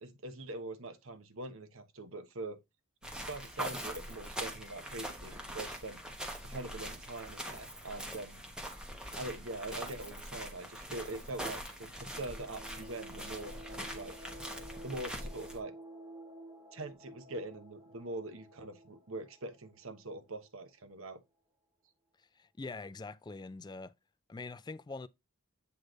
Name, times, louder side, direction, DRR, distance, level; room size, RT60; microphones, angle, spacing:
voice 1, 0.0-2.6 3.3-6.0 6.4-8.4 9.1-14.3 14.8-15.7 16.7-21.2, right 2 dB, 65° right, 1.1 m, -43 dB
sound 1, 3.0-15.6, equal, 5° right, 1.2 m, -43 dB
sound 2, 11.8-20.4, right 1 dB, 20° right, 1.7 m, -52 dB
voice 2, 22.2-23.9 24.3-25.1, left 3 dB, 20° left, 0.3 m, -44 dB
8.0 x 3.3 x 3.9 m
head